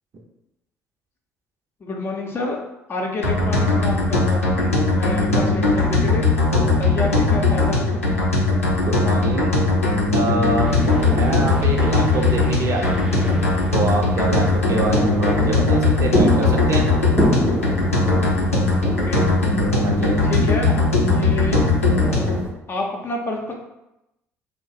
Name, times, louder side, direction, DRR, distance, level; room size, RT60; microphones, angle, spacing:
voice 1, 1.8-2.6 2.9-6.3 6.6-8.3 18.8-19.3 20.2-21.6 22.0-22.4 22.7-23.5, left 2 dB, 30° left, 0 dB, 0.7 m, -28 dB
sound 1, 3.2-22.4, left 2 dB, 90° left, 0.6 m, -19 dB
voice 2, 8.7-9.6 10.1-10.8 11.1-13.1 13.7-16.9 19.8-20.2, right 2 dB, 45° right, 1 dB, 0.7 m, -26 dB
sound 2, 10.7-22.5, equal, 10° right, 0.6 m, -29 dB
2.6 x 2.1 x 4.0 m, 0.90 s
figure-of-eight pair, 50°, 7 cm